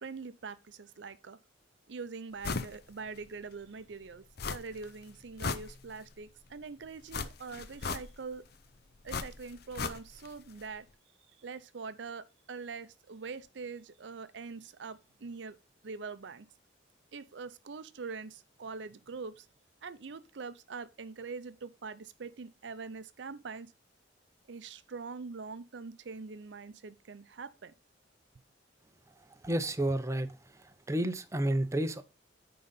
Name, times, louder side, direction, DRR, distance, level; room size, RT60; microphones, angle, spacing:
voice 1, 0.0-1.4 1.9-8.4 9.0-10.9 11.4-15.6 15.8-16.5 17.1-19.5 19.8-23.7 24.5-27.7, right 4 dB, 70° right, 0.6 m, -43 dB
tissue pulls, 2.4-2.8 3.1-3.2 4.4-4.9 5.2-6.2 7.1-8.4 9.1-10.3 10.6-10.7, left 4 dB, 55° left, 0.6 m, -37 dB
voice 2, 29.4-30.3 30.9-32.0, right 1 dB, 15° right, 0.6 m, -30 dB
9.6 x 3.9 x 5.2 m
head